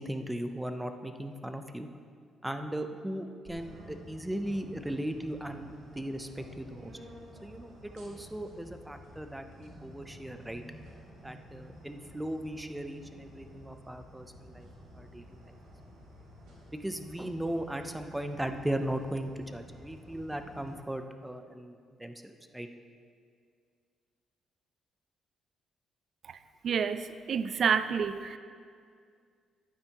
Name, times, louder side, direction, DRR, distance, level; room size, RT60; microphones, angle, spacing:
voice 1, 0.0-1.9 2.4-6.9 7.4-10.6 11.2-14.7 14.9-15.6 16.7-22.7, right 1 dB, 10° right, 7 dB, 0.6 m, -37 dB
sound 1, 3.4-20.7, equal, 85° right, 2.2 m, -51 dB
voice 2, 26.6-28.4, right 6 dB, 55° right, 12 dB, 0.3 m, -29 dB
11.0 x 8.9 x 3.0 m, 2.2 s
cardioid pair, 90°, 0 cm